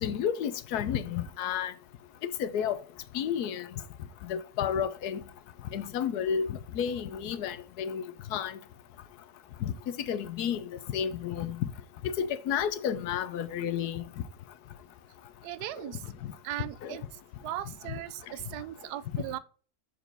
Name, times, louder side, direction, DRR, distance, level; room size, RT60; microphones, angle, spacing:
voice 1, 0.0-1.7 2.4-2.8 3.1-3.7 4.2-5.2 5.7-8.0 8.3-8.6 9.6-11.7 12.0-14.0 16.2-16.3 16.8-17.0 19.1-19.2, left 8 dB, 75° left, 1.2 m, -31 dB
voice 2, 15.4-16.0 16.4-19.4, right 13 dB, 80° right, 1.1 m, -38 dB
6.8 x 4.5 x 3.9 m
omnidirectional pair, 1.7 m